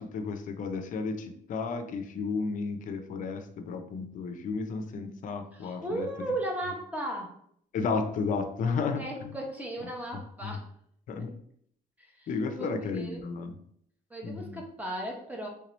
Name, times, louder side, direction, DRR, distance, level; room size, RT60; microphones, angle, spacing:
voice 1, 0.0-6.1 7.7-9.3 10.4-10.6 11.1-11.3 12.3-13.5 14.2-14.6, left 4 dB, 50° left, 8 dB, 0.5 m, -33 dB
voice 2, 5.5-7.4 9.0-10.7 11.2-11.3 12.0-12.3 12.6-13.2 14.1-15.5, right 1 dB, 10° right, 0 dB, 0.8 m, -36 dB
3.3 x 2.9 x 3.0 m, 0.66 s
cardioid pair, 110°, 17 cm